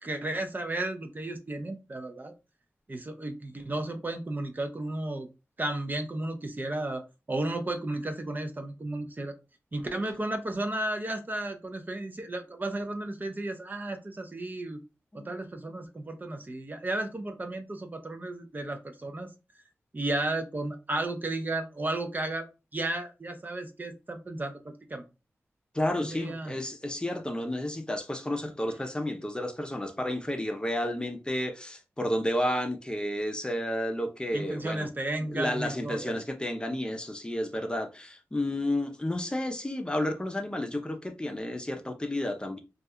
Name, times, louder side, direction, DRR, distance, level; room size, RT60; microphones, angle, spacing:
voice 1, 0.0-2.3 2.9-5.3 5.6-7.0 7.3-9.3 9.7-14.8 15.1-19.3 19.9-22.5 22.7-25.0 26.0-26.5 34.3-36.2, right 2 dB, 35° right, 0.5 m, -33 dB
voice 2, 25.7-34.9 35.3-42.6, left 1 dB, 15° left, 0.5 m, -31 dB
2.3 x 2.2 x 2.7 m
cardioid pair, 45°, 5 cm